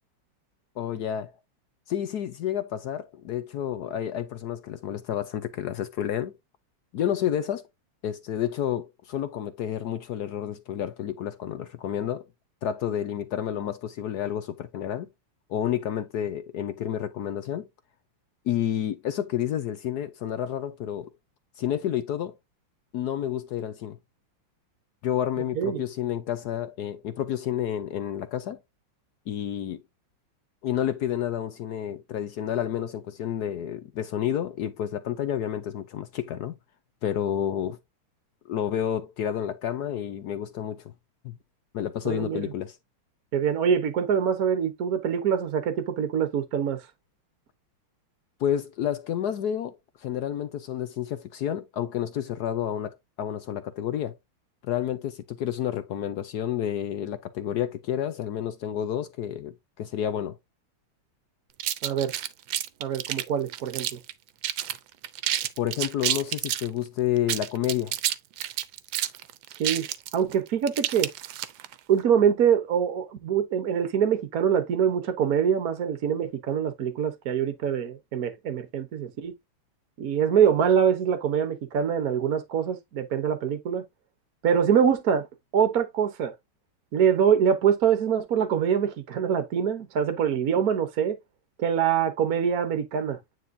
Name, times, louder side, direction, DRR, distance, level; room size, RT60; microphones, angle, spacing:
voice 1, 0.8-1.3 1.9-6.3 6.9-7.6 8.0-12.3 12.6-15.1 15.5-17.7 18.5-21.1 21.6-22.3 22.9-24.0 25.0-28.6 29.3-29.8 30.6-36.5 37.0-37.8 38.5-40.9 41.2-41.4 41.7-42.8 48.4-54.2 54.6-60.4 65.6-67.9, left 10 dB, 70° left, 1.0 m, -30 dB
voice 2, 42.0-42.5 43.3-46.9 61.8-62.1 62.8-64.0 69.6-69.9 70.1-71.1 71.9-79.3 80.0-83.8 84.4-85.3 85.5-86.3 86.9-91.2 91.6-93.2, right 8 dB, 55° right, 1.2 m, -24 dB
sound 1, 61.6-64.1 64.4-64.8 65.0-66.7 67.2-71.7, right 12 dB, 75° right, 1.4 m, -29 dB
9.3 x 4.1 x 2.6 m
omnidirectional pair, 2.3 m